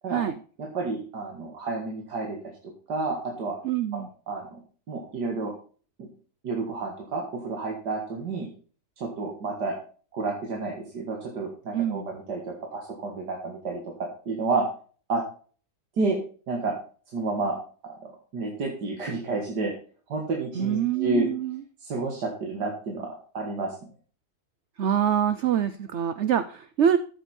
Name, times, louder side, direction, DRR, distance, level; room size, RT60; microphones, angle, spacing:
voice 1, 0.6-2.4 2.9-3.6 3.9-4.6 4.9-5.5 6.0-6.1 6.4-8.5 9.0-9.8 10.1-14.6 15.1-15.2 16.0-16.2 16.5-16.8 17.1-17.6 17.8-19.7 20.1-21.3 21.8-23.8, right 3 dB, 80° right, 0 dB, 2.3 m, -30 dB
voice 2, 3.6-4.1 11.7-12.1 20.6-21.6 24.8-27.0, right 9 dB, 65° right, 12 dB, 0.7 m, -25 dB
13.5 x 7.3 x 4.3 m, 0.41 s
omnidirectional pair, 1.8 m